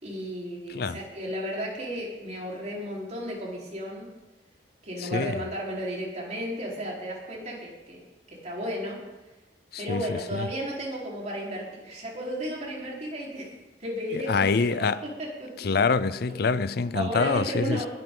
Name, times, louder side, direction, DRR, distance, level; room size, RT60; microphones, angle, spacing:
voice 1, 0.0-4.1 4.8-8.0 8.3-9.0 9.8-15.7 16.9-17.9, equal, 40° right, 4.4 m, -34 dB
voice 2, 5.0-5.4 9.7-10.5 14.1-15.0 15.6-17.8, left 4 dB, 60° left, 0.5 m, -26 dB
20.5 x 12.0 x 3.9 m
head